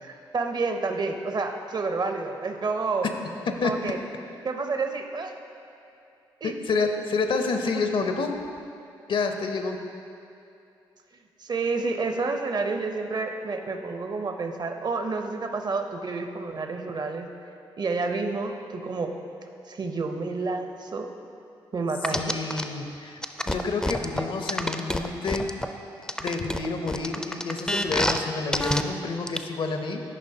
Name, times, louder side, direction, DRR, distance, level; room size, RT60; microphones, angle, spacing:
voice 1, 0.0-3.1 3.6-4.0 4.4-5.3 6.4-6.5 11.4-17.3 17.8-19.1 19.7-21.1 21.7-22.4, right 3 dB, 45° right, 5 dB, 0.7 m, -29 dB
voice 2, 6.4-8.4 9.1-9.8 22.1-23.2 23.5-25.5 26.2-30.0, left 4 dB, 55° left, 5 dB, 0.6 m, -28 dB
sound 1, 22.0-22.6 23.2-25.7 26.1-28.2 28.5-28.8 29.3-29.4, left 1 dB, 5° left, 0.4 m, -26 dB
10.5 x 5.1 x 2.7 m, 2.7 s
hypercardioid pair, 45°, 10 cm